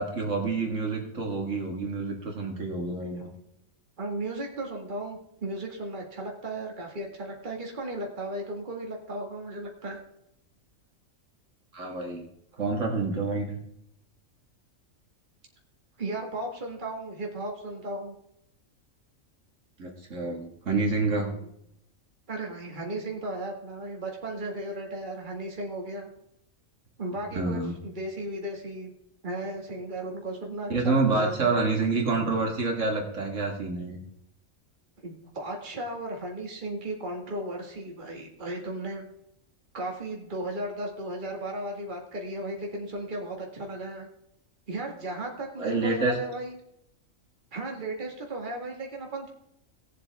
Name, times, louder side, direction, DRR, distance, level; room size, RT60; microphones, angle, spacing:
voice 1, 0.0-3.3 11.7-12.2 12.6-13.6 19.8-21.3 27.3-27.7 30.7-34.0 45.6-46.2, right 3 dB, 65° right, 1 dB, 2.2 m, -28 dB
voice 2, 4.0-10.0 16.0-18.2 21.3-21.5 22.3-26.1 27.0-28.9 29.2-31.6 35.0-39.0 39.7-44.1 44.7-46.6 47.5-49.3, right 1 dB, 35° right, 0 dB, 2.0 m, -35 dB
18.5 x 7.4 x 3.5 m, 0.76 s
omnidirectional pair, 1.4 m